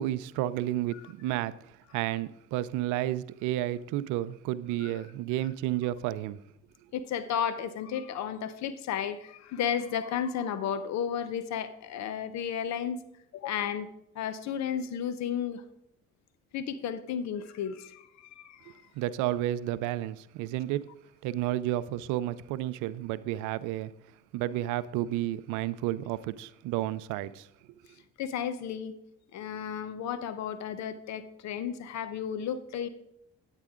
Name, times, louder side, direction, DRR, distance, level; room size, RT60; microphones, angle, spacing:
voice 1, 0.0-6.4 18.7-20.9 21.2-23.9 24.3-27.5, right 14 dB, 85° right, 0.5 m, -31 dB
voice 2, 6.9-13.0 13.3-15.6 16.5-18.7 28.2-29.0 29.3-32.9, left 8 dB, 65° left, 0.8 m, -33 dB
9.1 x 9.0 x 3.6 m
supercardioid pair, 65°, 30 cm